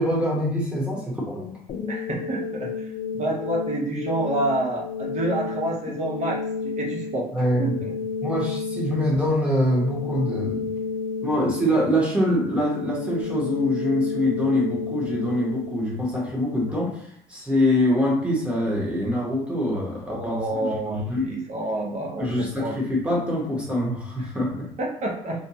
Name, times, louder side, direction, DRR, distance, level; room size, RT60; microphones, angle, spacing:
voice 1, 0.0-1.6 7.3-7.8 8.2-10.7 11.2-21.3 22.2-24.7, left 1 dB, 5° right, -5 dB, 1.0 m, -24 dB
sound 1, 1.7-16.7, left 5 dB, 60° left, 0.4 m, -32 dB
voice 2, 1.9-2.9 3.1-6.4 6.6-7.3 7.6-7.9 20.1-22.7 24.8-25.4, right 1 dB, 50° right, -1 dB, 0.6 m, -28 dB
2.6 x 2.2 x 2.7 m, 0.62 s
cardioid pair, 125°, 16 cm